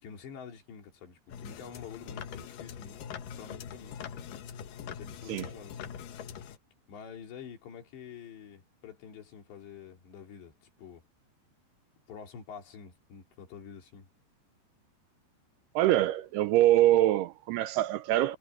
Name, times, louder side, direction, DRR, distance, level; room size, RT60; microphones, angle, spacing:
voice 1, 0.0-3.0 3.4-4.2 4.8-6.0 6.9-11.0 12.1-14.1, left 6 dB, 80° left, 5.7 m, -47 dB
sound 1, 1.3-6.6, left 8 dB, 65° left, 2.6 m, -43 dB
voice 2, 15.8-18.4, right 14 dB, 80° right, 2.5 m, -24 dB
omnidirectional pair, 5.0 m